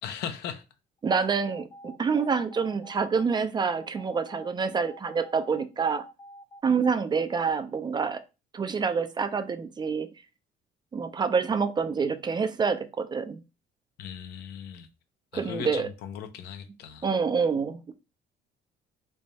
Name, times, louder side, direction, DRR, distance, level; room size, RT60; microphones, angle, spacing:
voice 1, 0.0-0.6 14.0-14.9 15.3-17.1, left 8 dB, 75° left, 0.6 m, -38 dB
sound 1, 1.0-7.5, equal, 30° left, 0.7 m, -48 dB
voice 2, 1.0-6.0 6.6-8.2 8.5-10.1 10.9-13.4 15.3-15.9 17.0-17.9, right 5 dB, 25° right, 0.4 m, -27 dB
3.3 x 2.2 x 4.0 m
cardioid pair, 110°, 17 cm